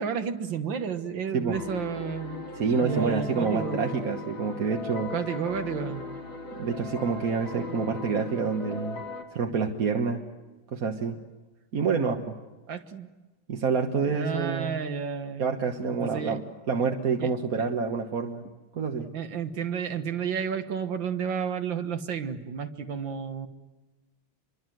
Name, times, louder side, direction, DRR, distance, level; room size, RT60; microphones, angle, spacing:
voice 1, 0.0-2.4 2.8-3.8 5.1-6.1 12.7-13.1 14.1-15.5 15.9-16.4 17.2-17.3 19.1-23.5, right 7 dB, 70° right, 8 dB, 2.1 m, -31 dB
sound 1, 1.5-9.2, left 3 dB, 75° left, 3.5 m, -38 dB
voice 2, 2.5-5.1 6.6-9.0 9.3-10.2 10.7-11.2 11.7-12.3 13.5-14.9 15.4-18.4 18.7-19.1, right 5 dB, 50° right, 3 dB, 1.6 m, -27 dB
27.0 x 23.0 x 7.8 m, 1.2 s
omnidirectional pair, 2.2 m